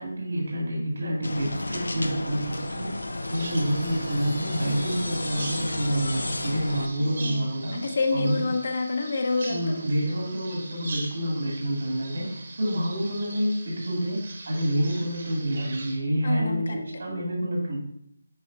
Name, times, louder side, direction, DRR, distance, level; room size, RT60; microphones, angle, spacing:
voice 1, 0.0-2.9 3.3-7.7 8.1-8.5 9.5-17.8, equal, 75° right, -2 dB, 2.1 m, -28 dB
sound 1, 1.2-6.9, left 2 dB, 90° left, 0.7 m, -33 dB
Bird vocalization bird call bird song, 3.3-16.0, right 3 dB, 55° right, 1.3 m, -42 dB
voice 2, 7.7-9.8 16.2-16.8, left 3 dB, 60° left, 4 dB, 1.0 m, -27 dB
8.8 x 4.2 x 2.6 m, 0.72 s
figure-of-eight pair, 165°, 0 cm